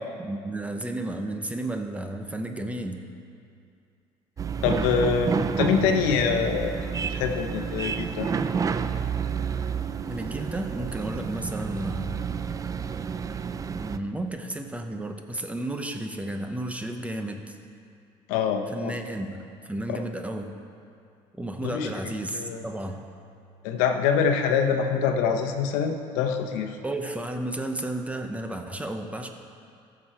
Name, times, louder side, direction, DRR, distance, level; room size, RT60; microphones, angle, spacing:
voice 1, 0.2-3.1 10.1-12.2 13.7-17.6 18.7-20.6 21.4-23.1 26.8-29.3, right 1 dB, 10° right, 5 dB, 0.8 m, -33 dB
sound 1, 4.4-14.0, right 6 dB, 25° right, 0.4 m, -30 dB
voice 2, 4.6-6.7 7.1-8.3 18.3-18.9 19.9-20.0 21.6-21.9 22.3-22.6 23.6-26.8, left 6 dB, 85° left, 4 dB, 0.9 m, -25 dB
15.0 x 6.1 x 4.4 m, 2.4 s
supercardioid pair, 95°, 13 cm